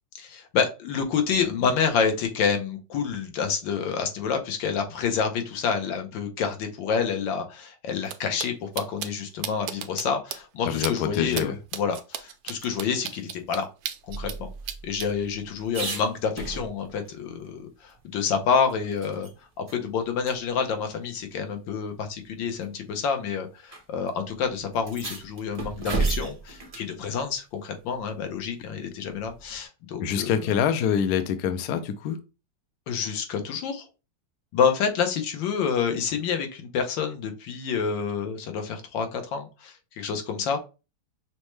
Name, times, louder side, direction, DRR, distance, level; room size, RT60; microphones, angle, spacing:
voice 1, 0.2-13.7 14.1-14.5 14.8-19.3 19.6-30.3 32.9-33.9 34.5-40.6, left 6 dB, 90° left, 1.5 m, -28 dB
sound 1, 8.0-8.1 8.4-8.5 8.8-9.1 9.4-10.0 10.3-10.4 10.8-10.9 11.3-11.4 11.7-14.4 14.7-15.1, right 10 dB, 80° right, 1.3 m, -33 dB
voice 2, 10.6-11.6 30.0-32.2, left 8 dB, 70° left, 1.0 m, -25 dB
sound 2, 14.1-17.1 17.4-17.5 17.9-19.3 19.7-19.8 20.2-20.4 21.4-21.5 22.4-22.7 23.7-23.8 24.1-24.2 24.7-26.9 29.2-29.7, right 3 dB, 45° right, 0.4 m, -33 dB
6.1 x 2.2 x 3.2 m
omnidirectional pair, 2.0 m